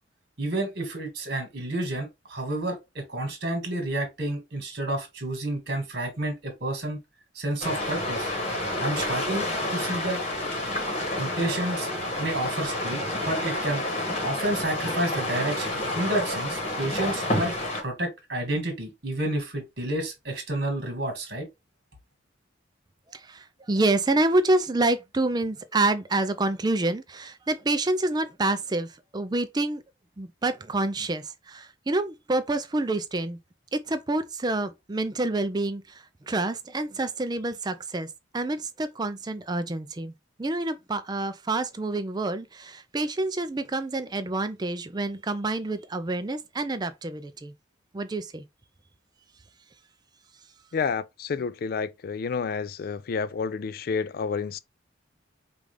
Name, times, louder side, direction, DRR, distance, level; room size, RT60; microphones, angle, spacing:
voice 1, 0.4-7.0 7.3-8.3 8.8-10.2 11.2-11.9 12.2-13.8 14.2-17.5 17.8-21.5, right 1 dB, 55° right, 1.7 m, -30 dB
sound 1, 7.6-17.8, left 1 dB, 35° left, 1.2 m, -29 dB
voice 2, 23.1-29.8 30.2-33.4 33.7-40.1 40.4-47.5 47.9-48.4, right 2 dB, 20° right, 0.4 m, -27 dB
voice 3, 50.7-54.6, left 5 dB, 50° left, 0.3 m, -29 dB
4.9 x 2.5 x 3.3 m
head